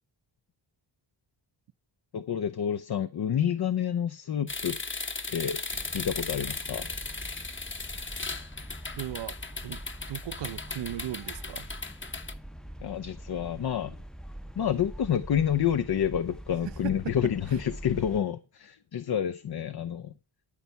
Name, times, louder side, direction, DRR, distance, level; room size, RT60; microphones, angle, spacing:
voice 1, 2.1-4.8 5.3-5.6 5.9-6.9 12.8-14.0 14.6-20.1, left 9 dB, 55° left, 0.7 m, -29 dB
sound 1, 4.5-12.3, left 3 dB, 25° left, 1.1 m, -37 dB
sound 2, 5.7-18.2, equal, ahead, 0.7 m, -44 dB
voice 2, 9.0-9.4 9.6-9.8 10.1-11.7 16.8-17.1, right 13 dB, 65° right, 0.6 m, -37 dB
13.5 x 4.7 x 6.8 m
cardioid pair, 75°, 46 cm